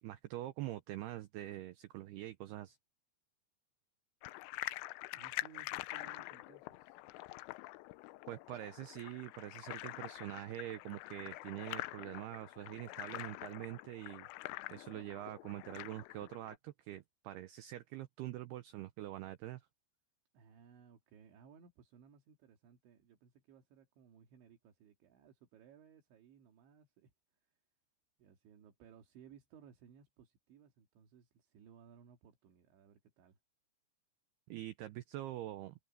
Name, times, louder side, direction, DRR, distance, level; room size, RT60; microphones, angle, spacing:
voice 1, 0.0-2.8 8.3-14.3 14.7-19.6 34.5-35.7, right 14 dB, 85° right, 2.3 m, -45 dB
sound 1, 4.2-16.6, left 20 dB, 90° left, 3.2 m, -46 dB
voice 2, 5.1-7.0 20.3-27.1 28.2-33.4, right 7 dB, 70° right, 4.7 m, -61 dB
omnidirectional pair, 5.6 m